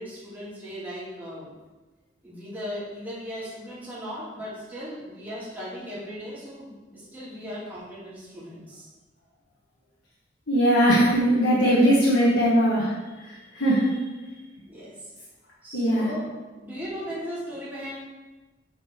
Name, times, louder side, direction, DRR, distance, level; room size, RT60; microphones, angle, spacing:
voice 1, 0.0-1.5 2.2-8.9 14.7-15.1 15.6-16.3 16.6-18.0, equal, 10° right, -10 dB, 2.5 m, -37 dB
voice 2, 10.5-14.0 15.7-16.1, equal, 85° left, -6 dB, 1.5 m, -20 dB
8.4 x 4.2 x 4.5 m, 1.2 s
head